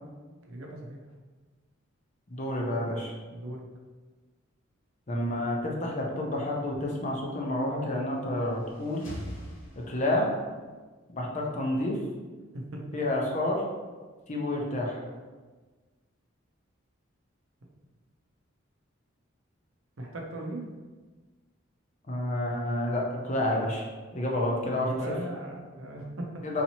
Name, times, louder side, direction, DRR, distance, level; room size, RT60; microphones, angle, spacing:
voice 1, 0.4-1.0 3.3-3.7 12.5-12.8 20.0-20.7 25.0-26.4, right 1 dB, 85° right, 0 dB, 0.7 m, -38 dB
voice 2, 2.3-3.1 5.1-9.1 9.8-10.4 11.1-12.0 12.9-13.6 14.3-15.0 22.1-23.9 24.1-25.2 26.4-26.6, left 1 dB, 35° left, -1 dB, 0.6 m, -29 dB
sound 1, 8.1-10.5, equal, 80° left, 1.0 m, -43 dB
4.1 x 2.8 x 2.9 m, 1.3 s
head